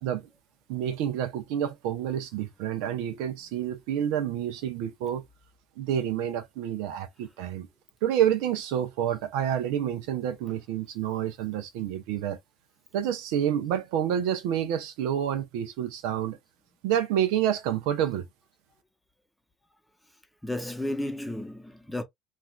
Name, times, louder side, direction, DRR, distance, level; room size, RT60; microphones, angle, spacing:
voice 1, 0.7-5.2 5.8-7.7 8.0-12.4 12.9-16.4 16.8-18.2, right 10 dB, 75° right, 0.6 m, -28 dB
voice 2, 20.4-22.0, left 1 dB, 5° left, 0.8 m, -33 dB
3.2 x 2.5 x 2.2 m
hypercardioid pair, 75°, 0 cm